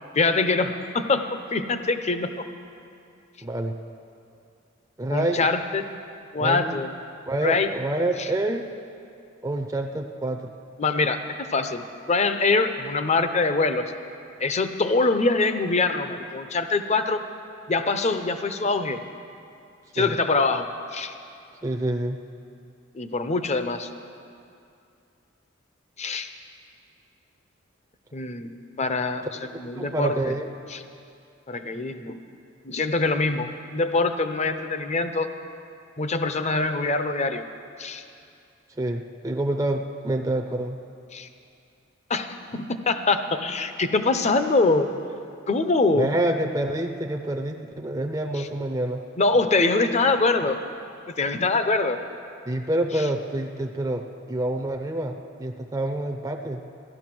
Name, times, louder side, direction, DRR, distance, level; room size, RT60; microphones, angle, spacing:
voice 1, 0.1-2.3 5.1-5.9 6.3-6.9 7.4-7.7 8.2-8.3 10.8-13.9 14.4-17.2 17.7-19.0 19.9-21.2 22.9-23.9 26.0-26.3 28.1-29.3 29.6-30.3 30.7-30.8 31.5-32.2 32.6-35.3 36.0-37.4 37.8-38.0 41.1-41.3 42.1-44.9 45.5-46.1 48.3-48.5 49.2-50.6 51.1-52.0 52.9-53.1, left 3 dB, 35° left, 9 dB, 0.7 m, -24 dB
voice 2, 3.4-3.8 5.0-5.5 6.4-6.8 7.3-8.7 9.4-10.5 20.0-20.1 21.6-22.2 29.7-30.5 38.8-40.8 45.9-49.0 52.5-56.6, right 1 dB, 20° right, 4 dB, 0.6 m, -27 dB
15.0 x 12.0 x 6.1 m, 2.5 s
head